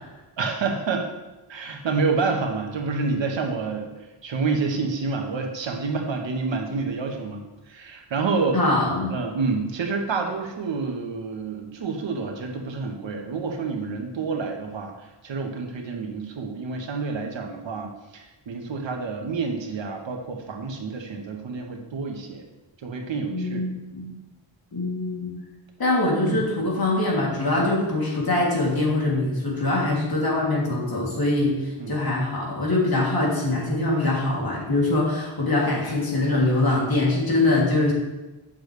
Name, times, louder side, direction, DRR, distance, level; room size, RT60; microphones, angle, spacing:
voice 1, 0.4-1.1 1.5-3.9 4.2-8.6 9.1-22.4 22.8-23.6 26.3-26.4 31.8-32.0 36.7-36.8, right 4 dB, 70° right, 3 dB, 1.3 m, -28 dB
voice 2, 8.5-9.1 23.3-24.2 24.7-25.3 25.8-31.6 31.9-37.9, left 2 dB, 50° left, -4 dB, 2.9 m, -23 dB
8.9 x 6.7 x 3.3 m, 1.1 s
cardioid pair, 80°, 46 cm